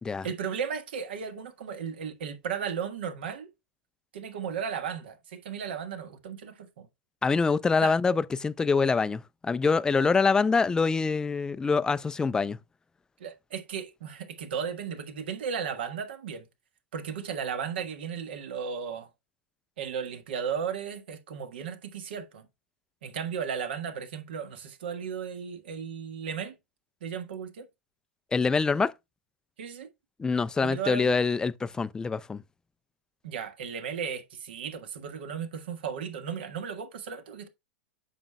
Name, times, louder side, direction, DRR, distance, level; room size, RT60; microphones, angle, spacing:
voice 1, 0.2-3.5 4.1-6.9 7.8-7.9 13.2-16.4 16.9-19.1 19.8-22.5 23.0-26.6 27.0-27.7 29.6-29.9 30.6-31.2 33.2-37.5, right 7 dB, 70° right, 1.4 m, -35 dB
voice 2, 7.2-12.6 28.3-28.9 30.2-32.4, left 4 dB, 10° left, 0.4 m, -25 dB
8.8 x 6.0 x 2.2 m
hypercardioid pair, 100°, 6 cm